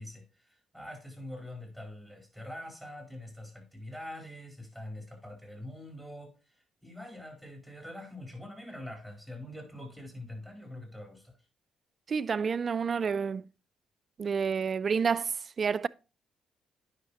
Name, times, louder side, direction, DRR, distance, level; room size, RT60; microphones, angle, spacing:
voice 1, 0.0-11.3, left 1 dB, 10° left, 4.2 m, -44 dB
voice 2, 12.1-13.5 14.2-15.9, right 6 dB, 45° right, 0.3 m, -29 dB
9.7 x 5.8 x 2.8 m
supercardioid pair, 60°, 0 cm